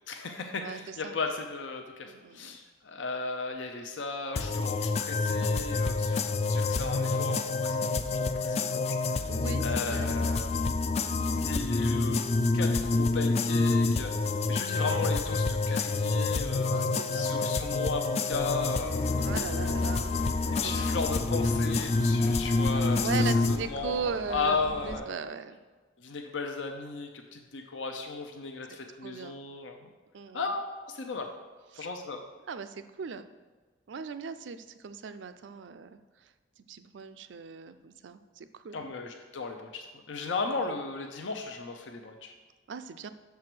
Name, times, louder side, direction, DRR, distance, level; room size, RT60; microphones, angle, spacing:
voice 1, 0.1-9.3 9.6-10.6 11.4-19.2 20.5-23.0 23.5-25.1 26.0-29.9 30.3-31.3 31.8-32.2 38.7-42.3, left 4 dB, 80° left, 4 dB, 0.6 m, -36 dB
voice 2, 0.6-1.2 2.0-2.6 9.3-10.1 11.0-11.4 14.1-14.6 16.7-17.5 19.2-20.9 23.0-25.6 29.0-29.4 30.1-30.4 31.7-31.9 32.5-33.3 33.9-38.8 40.6-40.7 42.7-43.1, right 5 dB, 70° right, 11 dB, 0.4 m, -39 dB
sound 1, 4.4-23.6, left 3 dB, 35° left, 0.3 m, -28 dB
sound 2, 18.3-25.0, left 1 dB, 50° left, 1.1 m, -42 dB
6.8 x 4.7 x 6.0 m, 1.3 s
head